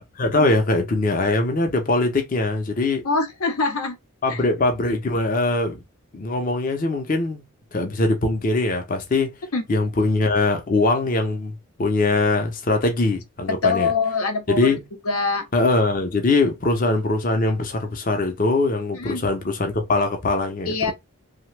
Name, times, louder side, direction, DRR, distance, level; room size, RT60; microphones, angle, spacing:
voice 1, 0.2-3.0 4.2-5.8 6.1-7.4 7.7-9.4 9.7-13.9 14.5-14.8 15.5-20.9, left 2 dB, 40° left, 0.5 m, -22 dB
voice 2, 3.0-4.0 4.3-4.4 9.5-9.6 13.5-14.8 15.0-15.5 18.9-19.2 20.7-20.9, left 4 dB, 90° left, 0.7 m, -24 dB
2.8 x 2.1 x 3.1 m
head